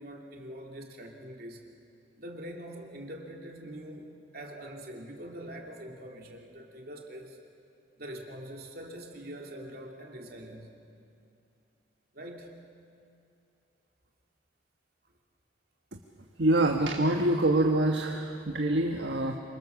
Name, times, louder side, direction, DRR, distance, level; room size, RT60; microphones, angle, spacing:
voice 1, 0.0-1.6 2.2-7.4 8.0-10.8 12.1-12.7, right 1 dB, 55° right, 1 dB, 3.1 m, -44 dB
voice 2, 16.4-19.4, right 1 dB, 70° right, 3 dB, 1.4 m, -25 dB
26.5 x 24.5 x 7.2 m, 2.7 s
head